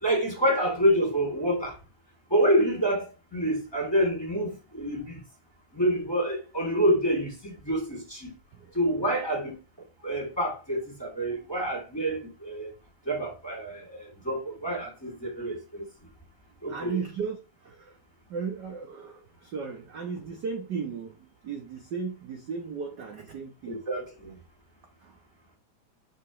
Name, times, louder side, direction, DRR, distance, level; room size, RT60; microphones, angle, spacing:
voice 1, 0.0-1.7 2.3-3.0 3.3-5.2 5.7-8.3 8.7-9.6 10.0-12.7 13.1-15.8 16.6-17.0 23.7-24.3, equal, 10° left, 2.9 m, -27 dB
voice 2, 10.0-10.3 16.7-18.0 18.3-23.8 25.0-25.2, right 5 dB, 60° right, 1.1 m, -36 dB
7.0 x 5.9 x 3.1 m
omnidirectional pair, 3.4 m